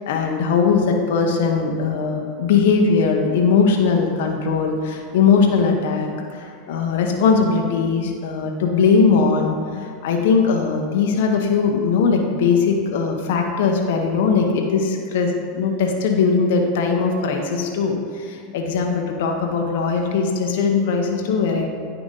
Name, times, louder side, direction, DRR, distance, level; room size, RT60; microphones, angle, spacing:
voice 1, 0.1-21.7, left 5 dB, 70° left, 2 dB, 0.9 m, -20 dB
9.5 x 5.0 x 3.8 m, 2.1 s
hypercardioid pair, 95°, 0 cm